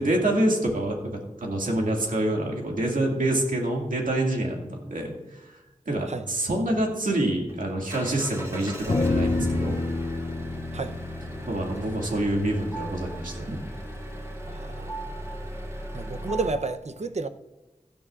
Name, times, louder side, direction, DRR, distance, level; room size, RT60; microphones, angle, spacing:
voice 1, 0.0-5.5 5.9-9.8 11.5-13.6, right 1 dB, 90° right, 2.1 m, -26 dB
Engine, 7.4-16.5, equal, 25° right, 2.8 m, -38 dB
sound 1, 8.9-13.4, left 3 dB, 40° left, 0.6 m, -29 dB
sound 2, 11.4-16.7, right 4 dB, 5° right, 4.2 m, -42 dB
voice 2, 14.5-14.9 15.9-17.3, right 3 dB, 55° right, 0.7 m, -31 dB
16.5 x 11.0 x 2.5 m
wide cardioid pair, 60°, 13 cm